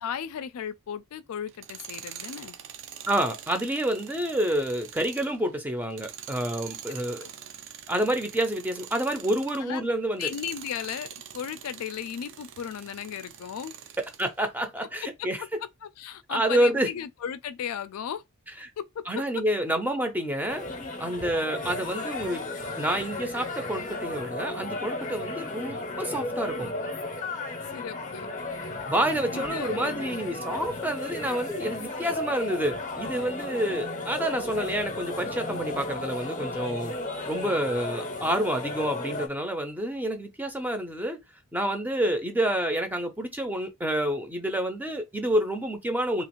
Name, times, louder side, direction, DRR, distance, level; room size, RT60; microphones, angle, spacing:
voice 1, 0.0-2.6 7.2-7.3 9.6-9.9 10.2-13.7 15.2-15.3 15.8-18.2 18.8-19.0 27.7-28.3 29.3-30.0, left 8 dB, 75° left, 0.4 m, -35 dB
Tools, 1.5-9.7 10.1-14.3, right 9 dB, 60° right, 0.5 m, -44 dB
voice 2, 3.1-7.2 7.9-10.3 14.0-15.4 16.3-16.9 18.6-18.7 19.1-20.6 21.0-22.4 22.8-26.7 28.9-37.0 37.2-41.2 41.5-46.2, right 1 dB, 10° right, 0.5 m, -28 dB
sound 1, 20.5-39.3, left 2 dB, 35° left, 0.7 m, -34 dB
2.9 x 2.4 x 3.0 m
head